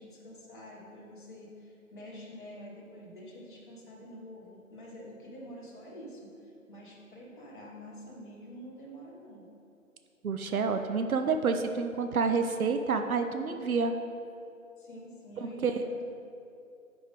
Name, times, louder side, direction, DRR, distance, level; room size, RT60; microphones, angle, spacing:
voice 1, 0.0-6.3 6.7-9.4 14.8-15.9, equal, 35° left, -5 dB, 1.2 m, -47 dB
voice 2, 10.2-13.9 15.4-15.8, right 5 dB, 80° right, 7 dB, 0.6 m, -29 dB
5.2 x 4.7 x 5.0 m, 2.7 s
figure-of-eight pair, 160°, 42 cm